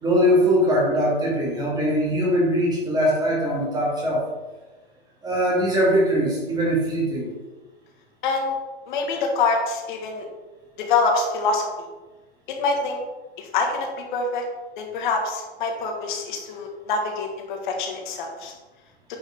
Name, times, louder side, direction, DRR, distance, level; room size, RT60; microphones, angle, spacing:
voice 1, 0.0-4.2 5.2-7.3, equal, 10° right, -4 dB, 2.2 m, -21 dB
voice 2, 8.2-8.6 8.9-10.3 10.8-11.7 12.6-13.0 13.4-14.4 14.8-18.5, left 4 dB, 50° left, 2 dB, 2.0 m, -25 dB
9.2 x 5.4 x 3.8 m, 1.2 s
hypercardioid pair, 150°, 31 cm